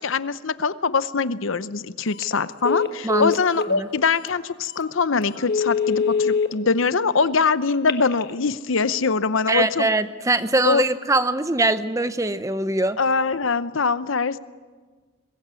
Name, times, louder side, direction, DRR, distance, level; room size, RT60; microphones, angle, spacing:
voice 1, 0.0-9.9 10.6-10.8 13.0-14.4, left 4 dB, 70° left, 14 dB, 0.7 m, -23 dB
Telephone, 2.1-2.3 2.6-3.7 4.3-4.4 4.8-4.9 5.3-6.5 7.7-8.3, left 5 dB, 50° left, 1.3 m, -23 dB
voice 2, 9.5-13.0, right 2 dB, 15° right, 12 dB, 0.7 m, -22 dB
23.0 x 21.0 x 8.3 m, 1.4 s
head